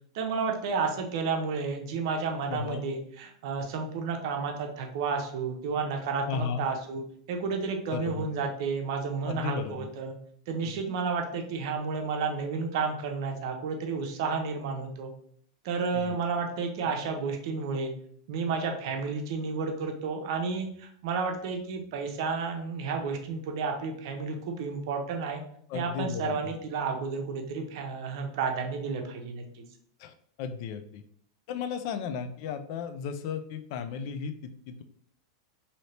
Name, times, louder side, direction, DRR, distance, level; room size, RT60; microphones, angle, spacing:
voice 1, 0.1-7.0 7.3-10.2 10.5-15.1 15.6-17.9 18.3-25.4 25.7-29.6, right 5 dB, 60° right, 3 dB, 0.7 m, -31 dB
voice 2, 2.5-2.9 6.2-6.7 7.9-8.3 9.3-9.9 10.6-10.8 15.9-16.2 25.7-26.5 30.0-31.0 31.5-34.8, left 6 dB, 50° left, 9 dB, 0.4 m, -35 dB
2.7 x 2.7 x 3.2 m, 0.65 s
supercardioid pair, 140°, 3 cm